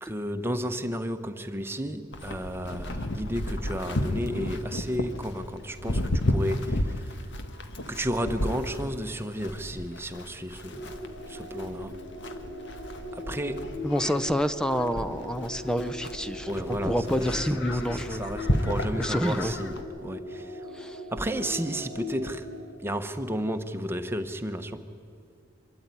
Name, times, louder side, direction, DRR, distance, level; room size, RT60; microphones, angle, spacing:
voice 1, 0.0-7.0 7.9-12.0 13.1-13.7 16.5-17.3 17.9-20.6 21.1-22.5 22.8-24.8, equal, 10° right, 7 dB, 1.1 m, -32 dB
Livestock farm animals working animals, 2.1-19.8, left 1 dB, 65° left, 1.5 m, -33 dB
sound 1, 10.7-22.6, left 1 dB, 85° left, 6.2 m, -40 dB
voice 2, 13.8-18.3 19.0-19.5 20.7-21.0, equal, 5° left, 11 dB, 0.6 m, -28 dB
25.0 x 13.5 x 9.7 m, 2.5 s
head